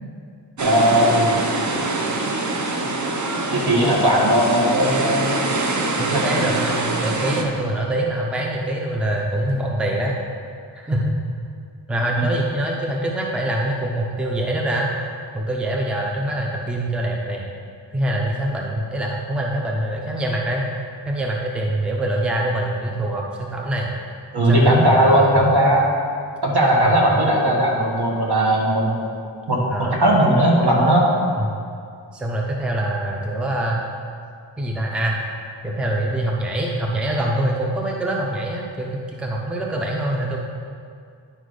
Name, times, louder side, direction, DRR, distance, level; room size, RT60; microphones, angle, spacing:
sound 1, 0.6-7.4, right 2 dB, 40° right, 0.8 m, -24 dB
voice 1, 0.6-1.3 3.5-5.3 6.1-6.2 24.3-25.8 26.4-29.0 29.5-29.6 29.9-31.1, right 1 dB, 55° right, -3 dB, 1.7 m, -17 dB
voice 2, 6.0-10.2 10.7-11.1 11.9-14.9 15.3-17.5 17.9-20.7 21.1-23.9 24.4-25.5 26.7-27.1 29.7-30.0 31.4-31.5 32.1-33.9 34.6-35.2 35.6-40.4, right 1 dB, ahead, -1 dB, 0.6 m, -24 dB
10.0 x 4.2 x 4.8 m, 2.3 s
wide cardioid pair, 110°, 46 cm